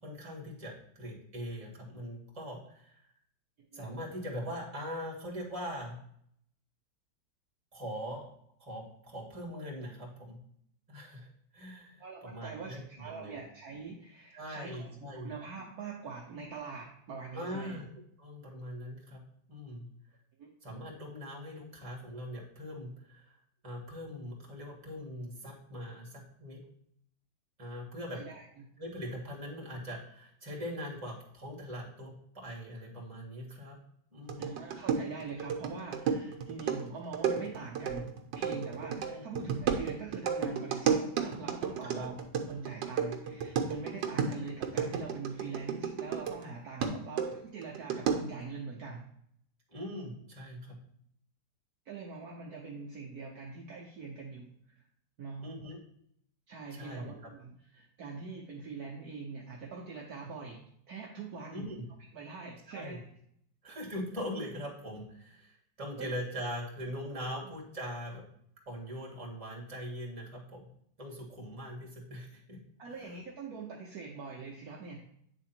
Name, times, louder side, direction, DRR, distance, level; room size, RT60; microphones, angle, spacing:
voice 1, 0.0-3.1 3.7-5.9 7.7-8.3 8.6-10.4 10.9-11.3 11.5-13.4 14.3-15.3 17.3-19.2 19.5-19.9 20.6-23.4 23.6-26.6 27.6-28.2 28.8-33.8 34.1-34.6 39.1-39.2 41.8-42.1 49.7-50.8 55.4-55.8 56.7-57.1 61.5-61.8 62.7-63.0 63.6-68.2 68.6-70.7 71.0-72.6 72.9-73.2, equal, 20° right, -3 dB, 1.8 m, -41 dB
voice 2, 12.0-17.8 20.4-20.5 28.1-28.7 34.4-38.1 38.3-49.0 51.8-54.9 55.2-55.5 56.5-61.7 62.1-63.1 66.0-66.1 72.8-75.0, right 4 dB, 60° right, -1 dB, 1.2 m, -43 dB
sound 1, 34.3-46.5 46.8-48.4, right 6 dB, 80° right, 1.5 m, -33 dB
9.0 x 3.6 x 4.4 m, 0.70 s
omnidirectional pair, 2.0 m